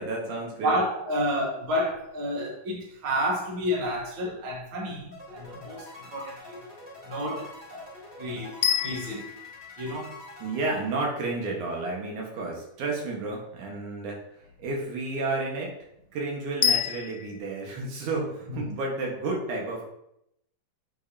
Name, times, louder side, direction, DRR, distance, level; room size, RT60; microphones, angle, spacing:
voice 1, 0.0-0.8 5.5-5.7 10.4-14.2 14.6-15.8 16.1-19.9, right 3 dB, 90° right, -1 dB, 2.8 m, -31 dB
voice 2, 0.6-6.6 7.0-7.9 8.2-9.3 9.8-10.1 18.5-18.7, equal, 50° right, -2 dB, 2.0 m, -30 dB
sound 1, 5.1-11.4, left 2 dB, 5° right, 1.8 m, -46 dB
sound 2, 8.6-10.8 16.6-17.4, left 9 dB, 80° left, 1.9 m, -29 dB
7.7 x 5.3 x 2.7 m, 0.78 s
omnidirectional pair, 3.4 m